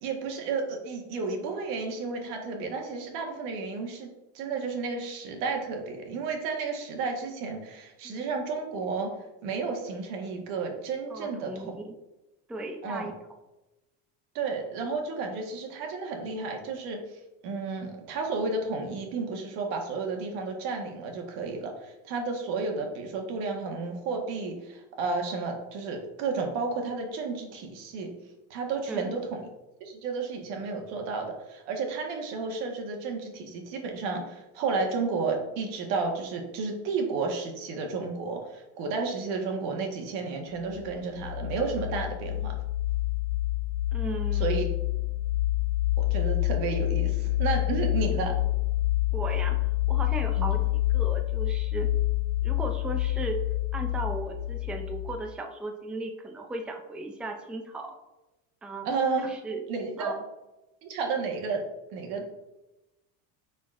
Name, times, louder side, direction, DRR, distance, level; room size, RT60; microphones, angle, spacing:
voice 1, 0.0-4.1 4.3-9.1 9.4-11.7 12.8-13.1 14.3-28.1 28.5-29.5 29.8-42.6 44.4-44.6 46.0-48.3 50.4-50.6 58.8-59.3 59.7-60.1 60.8-61.6 61.9-62.2, right 4 dB, 75° right, 2 dB, 1.5 m, -32 dB
voice 2, 11.1-12.0 12.5-13.1 28.9-29.2 43.9-44.6 49.1-51.9 52.4-53.4 53.7-58.0 58.6-58.9 59.2-59.6 60.0-60.2, right 2 dB, 5° right, 3 dB, 0.4 m, -36 dB
sound 1, 40.7-55.2, left 16 dB, 70° left, 0.5 m, -27 dB
9.9 x 4.1 x 2.5 m, 1.0 s
cardioid pair, 135°, 37 cm